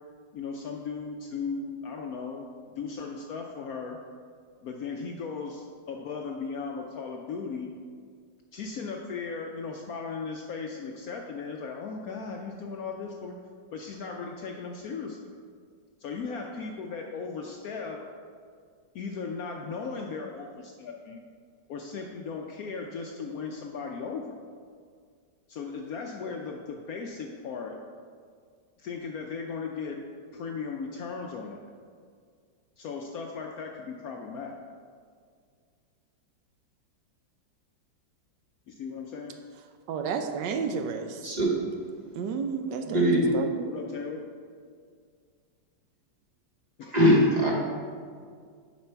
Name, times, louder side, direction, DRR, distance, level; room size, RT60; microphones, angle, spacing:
voice 1, 0.3-2.5 2.8-4.0 4.6-7.7 8.5-13.3 13.7-15.2 16.0-18.0 18.9-21.2 21.7-24.3 25.5-27.8 28.8-30.0 30.3-31.7 32.8-34.6 38.7-39.4 43.7-44.2 46.8-47.3, left 5 dB, 70° left, 2 dB, 0.8 m, -37 dB
voice 2, 39.9-41.3 42.1-43.7, right 5 dB, 75° right, 6 dB, 1.2 m, -31 dB
voice 3, 42.8-43.3 46.9-47.5, equal, 35° right, -3 dB, 0.7 m, -21 dB
7.2 x 5.2 x 4.5 m, 2.1 s
omnidirectional pair, 2.0 m